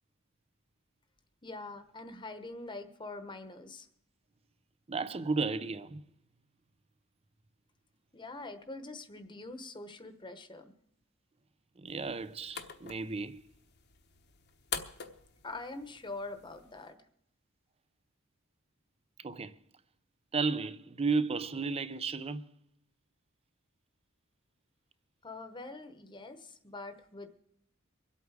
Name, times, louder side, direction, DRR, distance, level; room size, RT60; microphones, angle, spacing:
voice 1, 1.4-3.9 8.1-10.7 15.4-17.0 25.2-27.3, left 2 dB, 20° left, 1.1 m, -44 dB
voice 2, 4.9-6.0 11.8-13.4 19.2-19.6 20.3-22.4, right 4 dB, 30° right, 0.6 m, -33 dB
sound 1, 11.9-16.9, left 7 dB, 50° left, 1.0 m, -45 dB
24.0 x 8.4 x 4.8 m
head